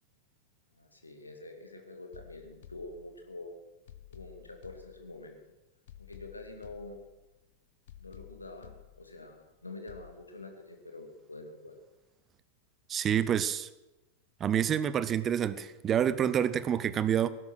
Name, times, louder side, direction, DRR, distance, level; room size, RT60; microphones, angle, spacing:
voice 1, 0.7-3.6 4.1-5.4 6.0-7.0 8.0-11.8, left 2 dB, 80° left, 2.3 m, -46 dB
sound 1, 2.1-3.4 3.9-5.4 5.9-7.4 7.9-9.4 9.9-10.1, left 12 dB, 55° left, 1.0 m, -53 dB
voice 2, 12.9-13.7 14.4-17.3, right 9 dB, 25° right, 0.7 m, -28 dB
17.5 x 10.5 x 6.3 m
figure-of-eight pair, 90°, 0 cm